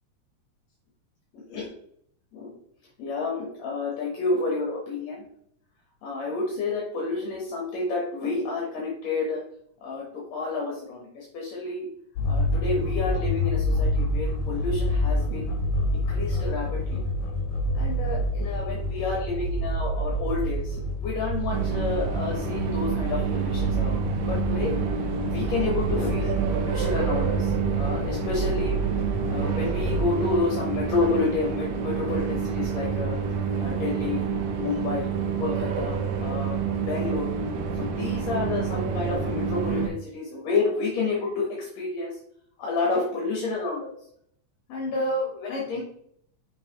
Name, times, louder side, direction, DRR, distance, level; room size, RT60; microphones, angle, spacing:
voice 1, 3.0-5.2 6.0-9.4 9.8-11.9 12.2-15.5 15.9-17.0 17.7-24.7 25.2-28.8 29.3-33.2 33.6-34.2 34.6-35.1 35.4-36.6 36.9-37.3 37.8-42.2 42.6-43.9 44.7-45.8, left 3 dB, 70° left, -3 dB, 2.4 m, -30 dB
sound 1, 12.2-30.0, equal, 85° left, 2.4 m, -28 dB
sound 2, 21.5-39.9, right 6 dB, 75° right, 2.0 m, -28 dB
6.3 x 5.5 x 3.0 m, 0.69 s
omnidirectional pair, 3.3 m